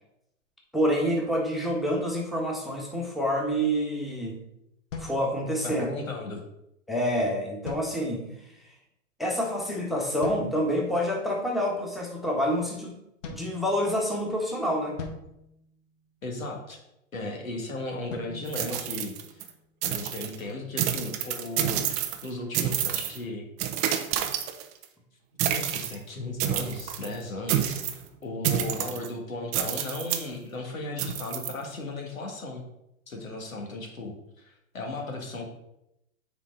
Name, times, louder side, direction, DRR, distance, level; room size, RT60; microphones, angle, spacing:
voice 1, 0.7-4.4 5.0-5.9 6.9-8.3 9.2-13.0 13.3-15.0 17.2-17.3, equal, ahead, -2 dB, 1.4 m, -27 dB
sound 1, 4.9-6.0 7.6-8.5 10.2-10.9 13.2-14.3 15.0-16.4 18.1-19.6, left 4 dB, 70° left, 1.4 m, -43 dB
voice 2, 5.6-6.4 16.2-16.8 17.1-19.4 19.8-23.5 23.8-23.9 25.3-32.6 33.1-35.5, left 2 dB, 85° left, 2 dB, 1.8 m, -36 dB
sound 2, 18.5-19.5 19.8-20.4 20.8-22.3 22.5-23.2 23.6-24.8 25.4-26.0 26.4-27.1 27.5-28.0 28.4-29.1 29.5-30.3 31.0-31.5, right 11 dB, 20° right, 0.4 m, -29 dB
7.3 x 4.7 x 3.8 m, 0.82 s
hypercardioid pair, 110°, 40 cm